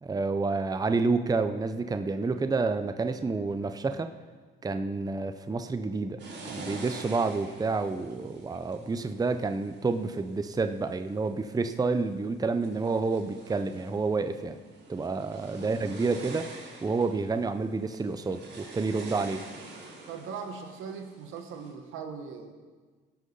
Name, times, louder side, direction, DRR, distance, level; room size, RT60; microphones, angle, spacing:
voice 1, 0.0-4.1 4.6-6.2 6.4-14.6 14.9-16.5 16.8-19.4, right 3 dB, 20° right, 9 dB, 0.6 m, -29 dB
sound 1, 6.2-10.9 11.5-12.1 12.5-21.7, right 3 dB, 60° right, 2.9 m, -47 dB
voice 2, 20.0-22.5, right 6 dB, 85° right, 5 dB, 1.4 m, -40 dB
17.0 x 6.3 x 5.5 m, 1.4 s
cardioid pair, 90°, 20 cm